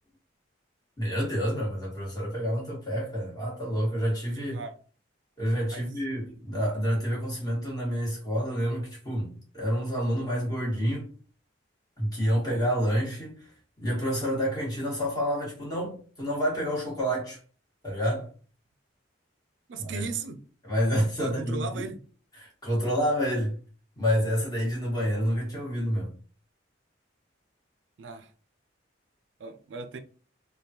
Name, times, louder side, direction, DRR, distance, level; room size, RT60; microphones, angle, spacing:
voice 1, 1.0-4.6 5.4-11.1 12.0-13.3 13.8-17.4 17.8-18.3 19.8-20.1 20.6-21.9 22.4-23.5 24.0-26.1, equal, 20° left, 1.3 m, -28 dB
voice 2, 4.3-4.7 5.7-5.9 6.3-6.4 19.7-20.4 21.2-22.0 28.0-28.3 29.4-30.0, right 4 dB, 70° right, 0.4 m, -37 dB
3.4 x 2.2 x 2.8 m
head